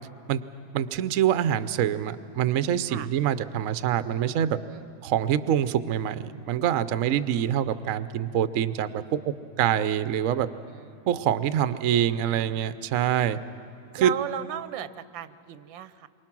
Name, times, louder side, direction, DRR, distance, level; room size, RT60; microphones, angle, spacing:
voice 1, 0.7-4.6 5.0-9.0 9.6-10.5 11.1-13.4 13.9-14.1, right 10 dB, 65° right, 12 dB, 0.8 m, -25 dB
voice 2, 10.7-11.1 14.0-16.1, right 10 dB, 85° right, 13 dB, 1.4 m, -36 dB
28.0 x 24.0 x 6.0 m, 2.7 s
omnidirectional pair, 2.0 m